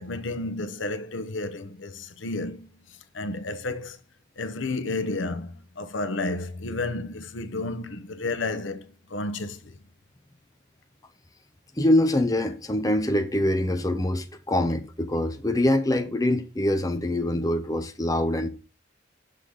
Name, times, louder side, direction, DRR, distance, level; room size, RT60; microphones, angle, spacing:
voice 1, 0.0-4.0 4.4-9.8, left 2 dB, 75° left, 0.9 m, -32 dB
voice 2, 11.8-18.5, left 1 dB, 20° left, 0.7 m, -24 dB
7.0 x 6.5 x 3.8 m
head